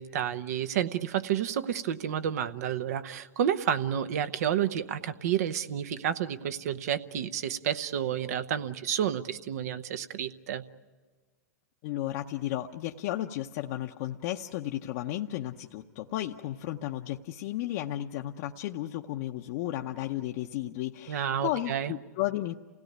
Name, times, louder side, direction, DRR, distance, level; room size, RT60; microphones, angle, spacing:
voice 1, 0.0-10.6 21.1-21.9, right 9 dB, 70° right, 11 dB, 1.0 m, -30 dB
voice 2, 11.8-22.5, left 14 dB, 55° left, 2 dB, 0.7 m, -34 dB
28.0 x 17.0 x 9.4 m, 1.4 s
hypercardioid pair, 115°, 9 cm